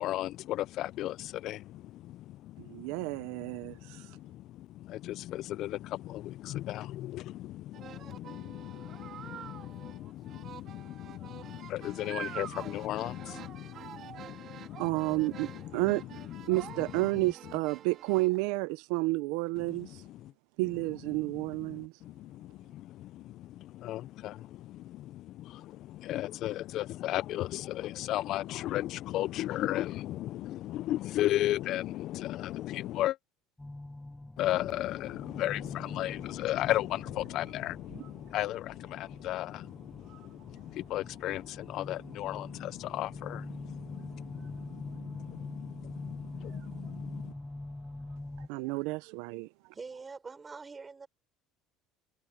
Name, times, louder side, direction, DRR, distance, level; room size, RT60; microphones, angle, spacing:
voice 1, 0.0-17.5 19.6-20.3 21.1-33.2 34.4-47.3, left 14 dB, 60° left, 0.3 m, -36 dB
voice 2, 2.6-4.1 14.8-16.0 16.5-20.0 20.6-21.9 48.5-49.5, right 23 dB, 80° right, 0.6 m, -31 dB
sound 1, 7.7-18.4, right 10 dB, 45° right, 1.8 m, -47 dB
sound 2, 33.6-48.5, left 2 dB, 10° left, 0.6 m, -45 dB
sound 3, 35.8-48.2, right 15 dB, 65° right, 3.3 m, -61 dB
voice 3, 49.7-51.1, right 4 dB, 20° right, 5.6 m, -44 dB
supercardioid pair, 115°, 0 cm